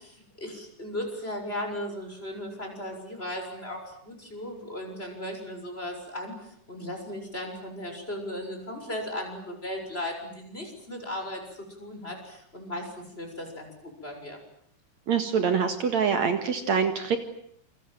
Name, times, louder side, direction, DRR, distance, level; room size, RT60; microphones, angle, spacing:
voice 1, 0.0-14.4, left 1 dB, 15° left, 3 dB, 6.9 m, -37 dB
voice 2, 15.1-17.2, right 6 dB, 60° right, 7 dB, 2.9 m, -25 dB
28.5 x 25.0 x 7.7 m, 0.67 s
omnidirectional pair, 3.7 m